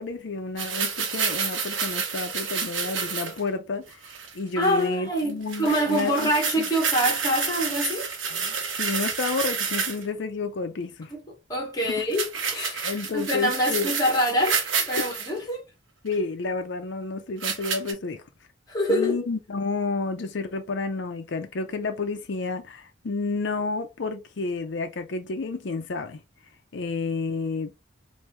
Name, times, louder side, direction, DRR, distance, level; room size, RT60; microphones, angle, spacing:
voice 1, 0.0-4.0 4.3-6.3 6.6-6.7 8.3-11.1 12.0-12.1 12.8-13.9 14.9-15.0 16.0-18.2 18.9-26.2 26.7-27.7, left 3 dB, 65° left, 0.5 m, -30 dB
sound 1, 0.6-3.4 3.9-4.3 4.6-4.8 5.2-5.3 5.5-10.0 12.1-15.3 16.1-16.2 17.4-17.9, right 6 dB, 85° right, 0.9 m, -29 dB
voice 2, 4.6-8.1 11.1-11.2 11.5-12.2 12.5-15.6 18.7-19.2, equal, 20° left, 1.3 m, -25 dB
3.4 x 2.6 x 2.9 m
head